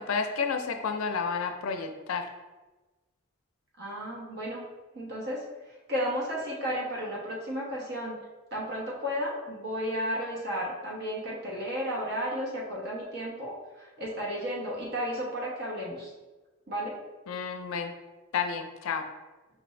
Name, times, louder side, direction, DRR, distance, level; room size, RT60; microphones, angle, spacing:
voice 1, 0.0-2.2 17.3-17.9 18.3-19.0, left 5 dB, 85° left, 6 dB, 0.4 m, -31 dB
voice 2, 3.8-4.7 4.9-8.2 8.5-16.1 16.7-17.0, equal, 50° right, -4 dB, 1.0 m, -33 dB
5.1 x 2.5 x 3.2 m, 1.2 s
head